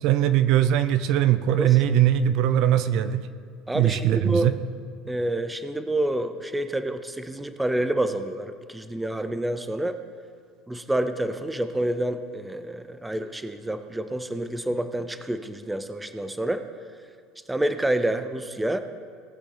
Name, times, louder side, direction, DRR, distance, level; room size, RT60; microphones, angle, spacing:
voice 1, 0.0-3.2 3.7-4.5, right 11 dB, 60° right, 13 dB, 0.5 m, -21 dB
voice 2, 3.7-4.5 5.1-10.0 10.7-16.6 17.5-18.8, right 1 dB, 5° right, 10 dB, 0.5 m, -28 dB
18.5 x 7.0 x 3.9 m, 2.1 s
cardioid pair, 140°, 0 cm